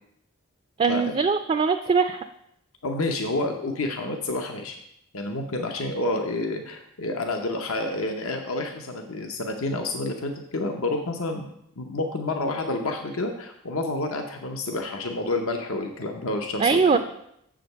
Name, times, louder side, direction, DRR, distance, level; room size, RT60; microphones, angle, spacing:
voice 1, 0.8-2.2 16.6-17.0, right 5 dB, 30° right, 8 dB, 0.3 m, -21 dB
voice 2, 2.8-4.8 5.1-11.5 11.8-17.0, left 2 dB, 80° left, 4 dB, 0.8 m, -29 dB
7.3 x 5.1 x 6.6 m, 0.76 s
head